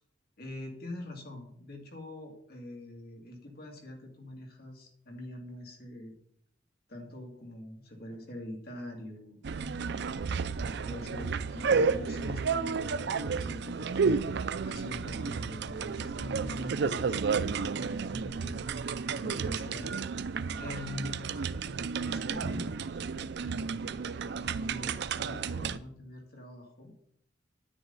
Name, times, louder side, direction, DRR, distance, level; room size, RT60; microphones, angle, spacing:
voice 1, 0.4-6.1 6.9-9.4 10.2-14.2 14.6-18.8 19.2-20.0 20.6-21.3 22.0-22.8 23.4-24.1 24.6-26.9, left 1 dB, 55° left, 1 dB, 2.7 m, -44 dB
sound 1, 9.4-25.8, right 5 dB, 65° right, 0.5 m, -32 dB
9.9 x 9.7 x 4.0 m, 0.68 s
head